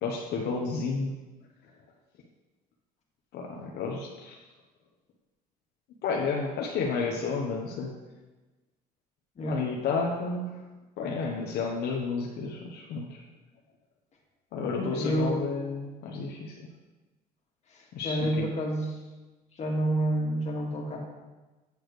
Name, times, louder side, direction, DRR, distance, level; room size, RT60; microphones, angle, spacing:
voice 1, 0.0-1.1 3.3-4.3 6.0-7.9 9.5-10.6 11.0-13.2 14.5-16.6 17.9-18.4, left 4 dB, 75° left, -1 dB, 0.9 m, -31 dB
voice 2, 14.9-15.4 17.7-19.0 19.5-21.0, right 1 dB, 40° left, -1 dB, 2.0 m, -29 dB
8.5 x 8.1 x 3.2 m, 1.2 s
cardioid pair, 110°, 17 cm